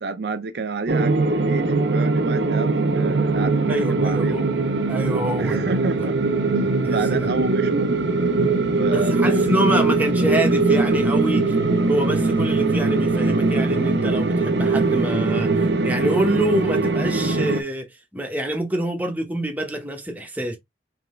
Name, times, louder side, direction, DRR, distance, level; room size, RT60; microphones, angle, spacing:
voice 1, 0.0-4.5 5.4-6.2 6.9-7.9 8.6-9.9, right 3 dB, 65° right, 0.5 m, -29 dB
sound 1, 0.9-17.6, right 3 dB, 85° right, 0.8 m, -21 dB
voice 2, 3.7-4.4 4.9-5.6 6.8-7.3 8.9-11.5 11.9-17.9 18.1-20.6, right 1 dB, 10° right, 1.0 m, -26 dB
3.8 x 3.4 x 3.1 m
head